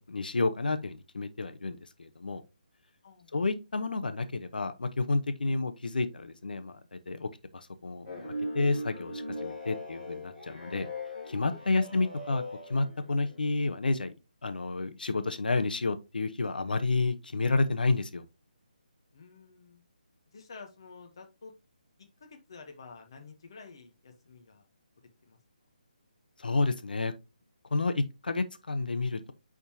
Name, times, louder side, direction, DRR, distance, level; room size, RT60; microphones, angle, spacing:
voice 1, 0.0-2.4 3.3-8.2 8.5-10.9 11.3-12.4 12.7-14.1 14.4-18.2 26.4-27.1 27.7-29.3, left 3 dB, 85° left, 0.9 m, -30 dB
voice 2, 3.0-3.4 5.4-5.6 11.6-12.0 19.1-19.8 20.3-21.5 22.2-24.7 25.2-25.4, left 4 dB, 30° left, 1.0 m, -50 dB
sound 1, 8.0-13.4, equal, 5° right, 2.4 m, -39 dB
9.3 x 3.7 x 2.8 m
hypercardioid pair, 180°, 5 cm